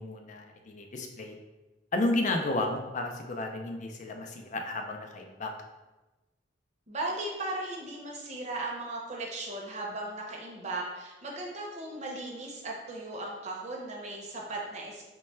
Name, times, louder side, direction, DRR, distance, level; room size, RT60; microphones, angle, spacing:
voice 1, 0.0-1.4 1.9-5.5, left 2 dB, 45° left, 3 dB, 0.4 m, -32 dB
voice 2, 6.9-15.1, right 2 dB, 40° right, -1 dB, 0.7 m, -37 dB
3.1 x 2.3 x 4.3 m, 1.1 s
head